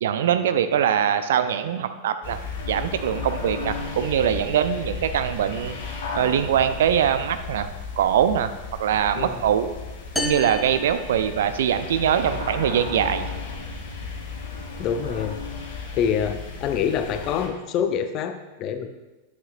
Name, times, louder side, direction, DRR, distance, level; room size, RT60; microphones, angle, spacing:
voice 1, 0.0-2.4 2.7-5.7 6.1-7.7 8.0-8.5 8.8-9.7 10.2-13.3, right 9 dB, 60° right, 11 dB, 0.5 m, -22 dB
sound 1, 2.2-17.5, left 4 dB, 60° left, 1.6 m, -34 dB
sound 2, 10.2-11.9, left 3 dB, 5° left, 0.8 m, -32 dB
voice 2, 14.8-15.4 15.7-18.9, left 8 dB, 35° left, 8 dB, 0.6 m, -26 dB
9.9 x 7.9 x 2.5 m, 1.1 s
figure-of-eight pair, 90°, 0 cm